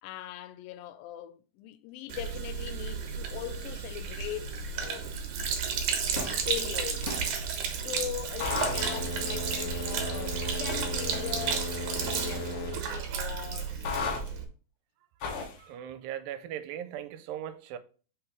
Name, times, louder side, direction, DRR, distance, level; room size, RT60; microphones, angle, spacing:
voice 1, 0.0-5.2 6.4-7.2 7.7-14.3, left 13 dB, 85° left, 2.3 m, -41 dB
Sink (filling or washing), 2.1-14.4, right 6 dB, 65° right, 2.1 m, -33 dB
sound 1, 6.1-6.5 7.0-7.4 8.4-12.8 13.8-14.2 15.2-15.6, left 3 dB, 65° left, 1.3 m, -35 dB
voice 2, 15.6-17.8, right 10 dB, 85° right, 2.3 m, -38 dB
6.1 x 5.3 x 3.7 m
omnidirectional pair, 4.1 m